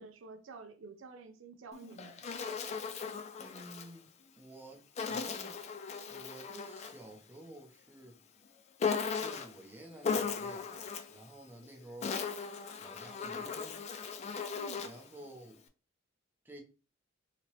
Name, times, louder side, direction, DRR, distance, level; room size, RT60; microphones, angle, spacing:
voice 1, 0.0-2.2 14.5-14.9, right 4 dB, 80° right, 0.5 m, -50 dB
Insect, 1.7-3.9 5.0-7.0 8.8-9.6 10.0-11.2 11.8-15.1, left 5 dB, 35° left, 0.3 m, -37 dB
voice 2, 3.4-5.6 6.1-8.2 9.2-12.2 12.8-13.8 14.8-15.6 16.4-16.6, right 1 dB, 10° right, 0.6 m, -51 dB
2.9 x 2.8 x 3.0 m
head